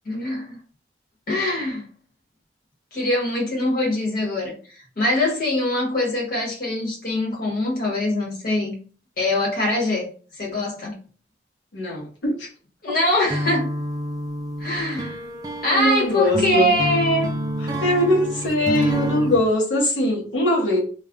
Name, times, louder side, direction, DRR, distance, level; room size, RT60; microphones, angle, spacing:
voice 1, 0.0-0.6 1.3-1.8 2.9-8.7 9.2-10.1 10.4-10.9 12.8-13.7 14.6-15.2 15.6-17.3, left 1 dB, 50° left, -2 dB, 1.1 m, -23 dB
voice 2, 11.7-12.5 15.7-16.7 17.6-20.8, left 1 dB, 90° left, -3 dB, 0.9 m, -21 dB
sound 1, 13.3-19.4, equal, 20° right, 0.4 m, -28 dB
2.3 x 2.2 x 3.6 m, 0.41 s
head